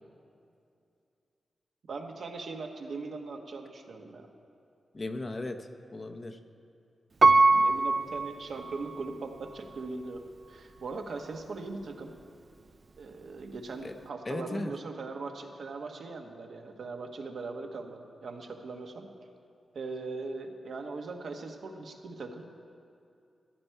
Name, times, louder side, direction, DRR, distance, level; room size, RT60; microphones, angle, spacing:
voice 1, 1.9-4.3 7.5-10.2 10.5-12.1 13.0-19.1 19.7-22.5, right 3 dB, 70° right, 3 dB, 1.2 m, -40 dB
voice 2, 4.9-6.4 13.8-13.9 14.3-14.7, left 2 dB, 30° left, 6 dB, 0.6 m, -36 dB
Piano, 7.2-9.2 9.8-9.9, right 3 dB, 40° right, 0.3 m, -23 dB
15.0 x 11.5 x 4.6 m, 2.6 s
wide cardioid pair, 130°, 0 cm